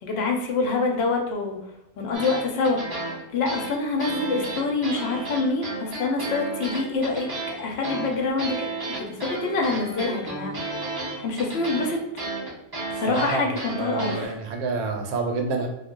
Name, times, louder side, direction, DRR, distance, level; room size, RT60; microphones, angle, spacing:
voice 1, 0.0-1.6 2.0-2.8 3.3-10.6 11.2-12.0 12.9-14.3, left 3 dB, 60° left, 1 dB, 0.7 m, -26 dB
sound 1, 2.1-14.3, right 2 dB, 40° right, 0.3 m, -32 dB
voice 2, 13.1-15.7, right 4 dB, 80° right, 3 dB, 1.0 m, -28 dB
2.3 x 2.1 x 3.6 m, 0.93 s
omnidirectional pair, 1.5 m